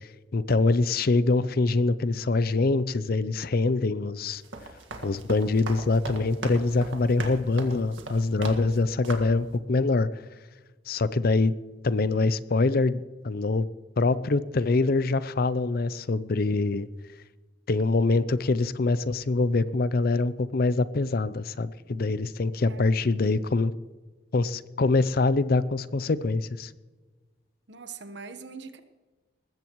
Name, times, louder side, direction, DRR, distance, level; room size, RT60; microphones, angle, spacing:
voice 1, 0.3-4.4 5.0-10.1 10.9-11.5 11.8-13.7 14.0-16.9 17.7-23.7 24.3-26.7, left 3 dB, 50° left, 16 dB, 0.5 m, -24 dB
sound 1, 4.3-8.8 9.0-9.4, right 2 dB, 80° right, 1.8 m, -38 dB
voice 2, 22.7-23.6 27.7-28.8, right 4 dB, 60° right, 9 dB, 1.2 m, -44 dB
20.0 x 15.0 x 3.1 m, 1.3 s
head